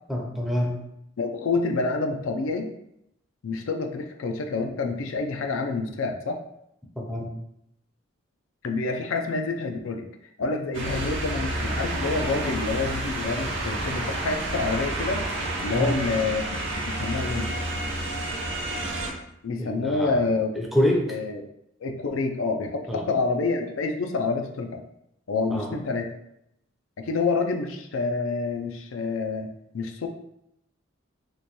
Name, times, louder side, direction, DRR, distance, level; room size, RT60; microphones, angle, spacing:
voice 1, 0.1-0.8 7.0-7.3 15.7-16.0 19.6-20.2 20.5-21.2 22.9-23.0 25.5-25.7, equal, ahead, -1 dB, 0.5 m, -26 dB
voice 2, 1.2-2.7 3.4-6.4 8.6-10.1 10.4-15.2 15.6-16.6 16.8-17.5 19.4-20.7 21.1-21.4 21.8-24.8 25.3-26.1 27.0-30.1, left 3 dB, 85° left, 5 dB, 0.4 m, -27 dB
sound 1, 10.7-19.1, right 1 dB, 65° right, 0.8 m, -30 dB
3.1 x 2.2 x 4.0 m, 0.79 s
head